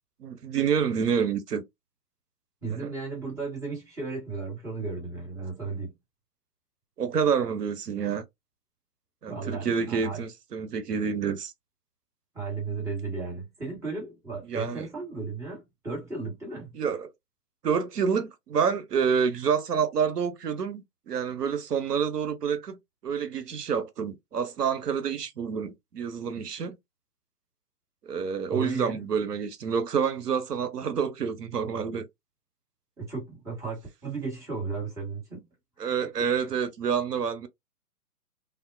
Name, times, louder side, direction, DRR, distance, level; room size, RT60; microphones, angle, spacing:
voice 1, 0.2-1.6 2.7-2.9 7.0-8.2 9.2-11.5 14.5-14.9 16.7-17.1 17.6-22.8 23.0-26.8 28.1-32.0 35.8-37.5, right 6 dB, 80° right, 0.7 m, -28 dB
voice 2, 2.6-5.9 9.3-10.2 12.3-16.7 28.5-29.0 33.0-35.5 35.8-36.1, right 4 dB, 5° right, 1.2 m, -35 dB
3.4 x 2.1 x 2.4 m
figure-of-eight pair, 135°, 47 cm